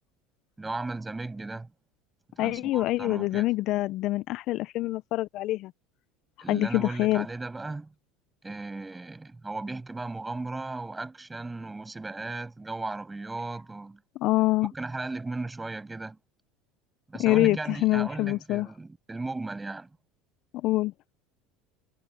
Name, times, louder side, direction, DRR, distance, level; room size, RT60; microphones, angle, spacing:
voice 1, 0.6-1.7 2.4-3.5 6.4-7.9 8.4-14.0 14.7-16.2 17.1-19.9, right 3 dB, 15° right, 6.8 m, -36 dB
voice 2, 2.4-5.7 6.5-7.3 14.2-14.7 17.2-18.7 20.6-20.9, left 17 dB, 55° left, 0.6 m, -25 dB
supercardioid pair, 105°, 0 cm